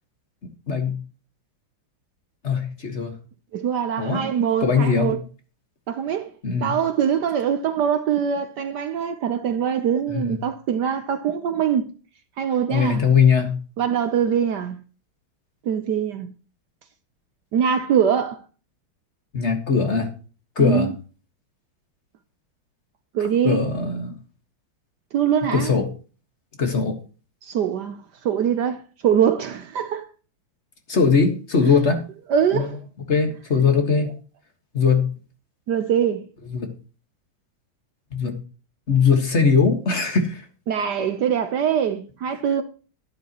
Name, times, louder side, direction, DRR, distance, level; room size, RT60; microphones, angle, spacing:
voice 1, 0.7-1.0 2.4-3.1 4.0-4.2 4.6-5.1 6.4-6.8 10.1-10.4 12.7-13.5 19.3-20.1 20.6-20.9 23.4-24.1 25.5-25.9 26.6-26.9 30.9-32.0 32.5-32.7 33.1-34.1 34.7-35.1 36.5-36.7 38.1-38.3 38.9-40.4, left 5 dB, 35° left, 1.8 m, -20 dB
voice 2, 3.5-5.2 5.9-6.3 6.6-11.9 12.4-13.0 13.8-14.8 15.6-16.3 17.5-18.4 20.6-20.9 23.1-23.6 25.1-25.8 27.4-28.0 28.2-30.0 32.3-32.8 35.7-36.2 40.7-42.6, right 8 dB, 65° right, 1.2 m, -23 dB
12.0 x 11.0 x 3.0 m
omnidirectional pair, 2.2 m